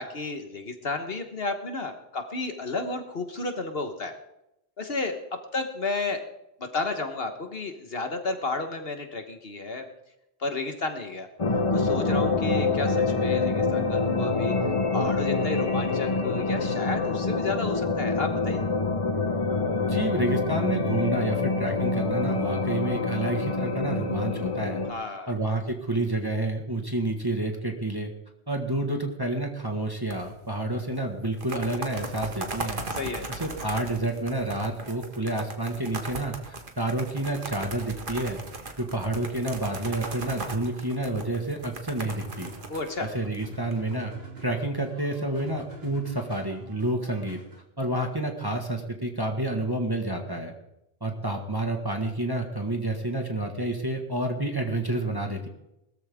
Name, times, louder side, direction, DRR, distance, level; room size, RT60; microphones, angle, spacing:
voice 1, 0.0-4.1 4.8-5.2 5.5-6.2 6.6-9.8 10.4-11.3 11.7-14.5 14.9-18.6 24.9-25.4 32.9-33.3 42.7-43.1, left 3 dB, 65° left, 6 dB, 1.5 m, -32 dB
sound 1, 11.4-24.9, left 3 dB, 30° left, 1.1 m, -26 dB
voice 2, 19.8-24.8 25.3-28.1 28.5-32.8 33.3-36.3 36.8-38.4 38.8-42.5 43.0-44.1 44.4-47.4 47.8-50.5 51.0-55.5, right 1 dB, 20° right, 3 dB, 1.6 m, -29 dB
sound 2, 30.1-30.5 30.8-30.9 31.2-43.7, right 3 dB, 50° right, 1.7 m, -38 dB
sound 3, 42.2-47.6, right 3 dB, 65° right, 3.2 m, -46 dB
21.0 x 13.5 x 3.6 m, 0.86 s
omnidirectional pair, 1.1 m